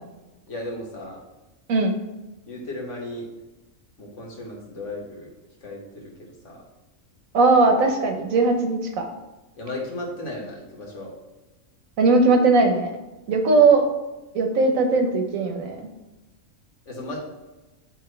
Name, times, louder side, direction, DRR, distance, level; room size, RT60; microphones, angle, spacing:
voice 1, 0.5-1.2 2.5-3.3 4.0-5.3 5.6-6.1 6.4-6.6 9.6-11.1 16.9-17.2, left 1 dB, 65° left, -2 dB, 1.7 m, -35 dB
voice 2, 7.3-9.1 12.0-12.9 13.3-13.8 14.3-15.8, right 3 dB, 85° right, 4 dB, 1.3 m, -19 dB
9.3 x 3.3 x 3.2 m, 1.1 s
omnidirectional pair, 1.4 m